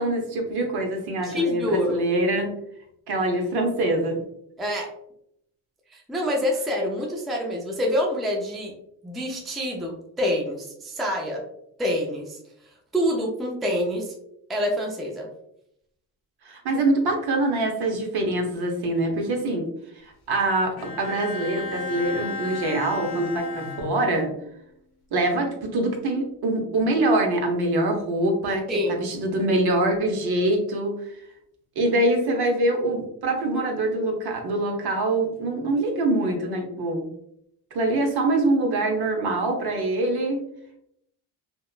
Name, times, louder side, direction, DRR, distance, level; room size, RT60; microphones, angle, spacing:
voice 1, 0.0-2.5 3.1-4.2 16.4-19.7 20.3-24.3 25.1-28.7 29.0-31.1 31.8-37.1 37.7-40.4, right 2 dB, 55° right, 2 dB, 0.8 m, -24 dB
voice 2, 1.2-2.0 4.6-4.9 5.9-8.7 9.0-11.4 11.8-12.4 12.9-14.1 14.5-15.3 28.7-29.1, equal, ahead, 0 dB, 0.4 m, -26 dB
Bowed string instrument, 20.8-24.4, left 4 dB, 55° left, 0.6 m, -35 dB
2.8 x 2.2 x 2.3 m, 0.74 s
cardioid pair, 85°, 47 cm